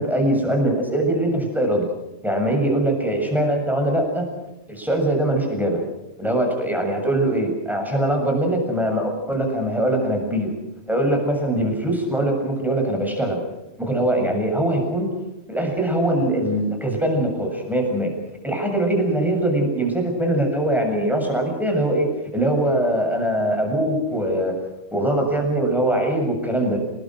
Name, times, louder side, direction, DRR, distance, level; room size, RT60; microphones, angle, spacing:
voice 1, 0.0-1.9 2.2-4.3 4.7-5.8 6.2-10.5 10.9-13.4 13.8-15.1 15.5-18.1 18.4-22.1 22.3-24.5 24.9-26.8, right 1 dB, ahead, 2 dB, 7.2 m, -22 dB
28.0 x 20.0 x 6.5 m, 0.94 s
omnidirectional pair, 1.4 m